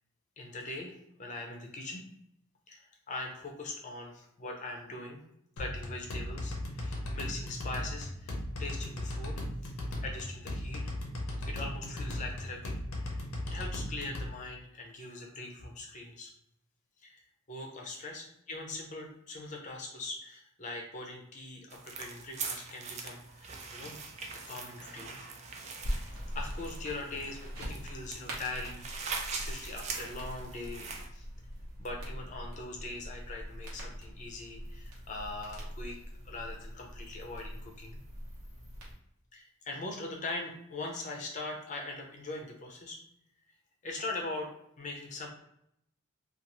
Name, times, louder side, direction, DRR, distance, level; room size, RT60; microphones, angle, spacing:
voice 1, 0.4-2.0 2.7-5.2 5.6-9.3 9.6-9.7 10.0-10.8 11.5-13.2 13.5-16.3 17.0-17.2 17.5-24.0 24.3-25.3 25.9-31.3 31.8-36.0 36.2-38.0 39.3-43.0 43.8-44.5 44.8-45.3, left 2 dB, 35° left, 1 dB, 0.6 m, -41 dB
sound 1, 5.6-14.3, left 1 dB, 85° left, 0.7 m, -37 dB
sound 2, 21.7-31.1, right 4 dB, 30° right, 0.3 m, -42 dB
sound 3, 25.8-38.9, equal, 80° right, 1.0 m, -42 dB
2.6 x 2.5 x 2.9 m, 0.75 s
head